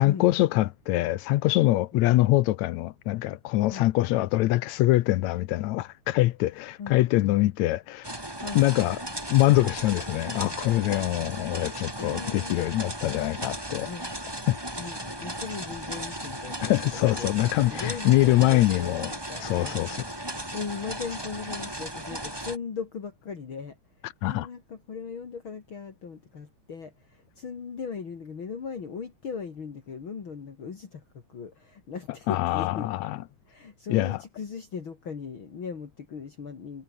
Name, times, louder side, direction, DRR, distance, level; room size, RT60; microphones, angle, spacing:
voice 1, 0.0-8.1 8.6-9.0 9.3-13.9 14.5-14.6 16.6-19.1 19.4-20.0 24.2-24.5 32.3-33.2 33.9-34.2, left 17 dB, 75° left, 1.9 m, -24 dB
sound 1, 8.0-22.6, right 1 dB, 5° right, 4.5 m, -36 dB
voice 2, 12.0-12.7 13.8-14.1 14.8-19.8 20.5-23.8 24.2-32.9 33.5-36.8, left 6 dB, 45° left, 2.9 m, -38 dB
omnidirectional pair, 3.3 m